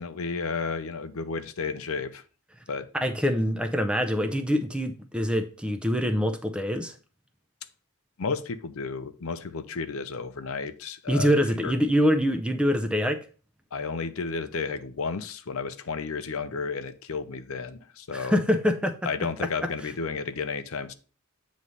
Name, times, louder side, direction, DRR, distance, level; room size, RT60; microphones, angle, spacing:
voice 1, 0.0-2.2 2.7-2.9 8.2-11.7 13.7-18.4 19.0-20.9, left 4 dB, 70° left, 0.6 m, -32 dB
voice 2, 2.9-7.0 11.1-13.2 18.1-19.0, equal, 5° right, 0.5 m, -24 dB
8.3 x 3.2 x 5.4 m
head